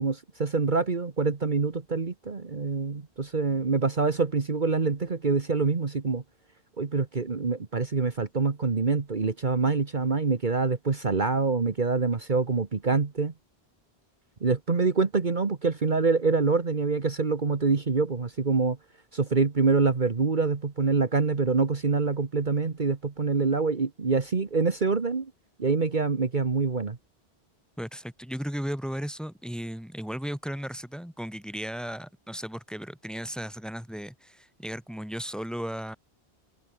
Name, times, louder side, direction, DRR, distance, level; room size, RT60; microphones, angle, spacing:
voice 1, 0.0-6.2 6.8-13.3 14.4-18.8 19.1-25.3 25.6-27.0, right 4 dB, 45° right, 1.6 m, -25 dB
voice 2, 27.8-36.0, equal, ahead, 2.7 m, -35 dB
omnidirectional pair, 1.1 m